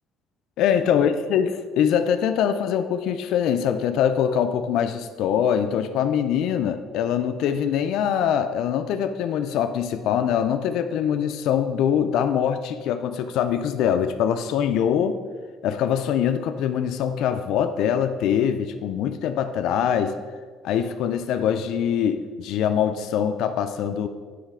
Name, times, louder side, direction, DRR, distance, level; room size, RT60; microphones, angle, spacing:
voice 1, 0.6-15.2 15.6-20.2 20.6-24.1, left 8 dB, 75° left, 8 dB, 0.4 m, -23 dB
9.5 x 3.2 x 4.9 m, 1.5 s
cardioid pair, 115°, 0 cm